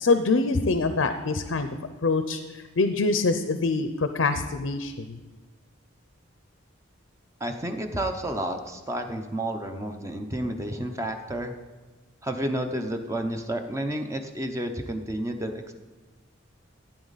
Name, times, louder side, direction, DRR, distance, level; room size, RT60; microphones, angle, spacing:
voice 1, 0.0-1.7 2.0-5.2, left 3 dB, 75° left, 9 dB, 0.6 m, -25 dB
voice 2, 7.4-11.5 12.2-15.7, right 1 dB, 15° right, 5 dB, 0.7 m, -31 dB
14.5 x 9.1 x 4.1 m, 1.3 s
head